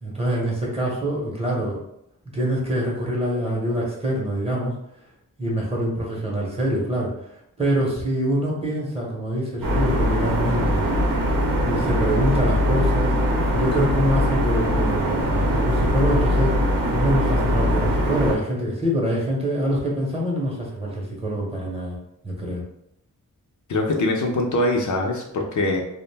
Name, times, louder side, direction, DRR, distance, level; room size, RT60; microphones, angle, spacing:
voice 1, 0.0-1.8 2.3-4.7 5.4-7.1 7.6-10.8 11.6-13.1 13.5-16.5 16.9-22.0 22.2-22.6, equal, 20° right, -3 dB, 0.7 m, -25 dB
sound 1, 9.6-18.3, equal, 80° right, 0.7 m, -21 dB
voice 2, 23.7-25.8, left 2 dB, 60° left, 1 dB, 0.5 m, -23 dB
2.4 x 2.1 x 3.2 m, 0.77 s
wide cardioid pair, 130°, 33 cm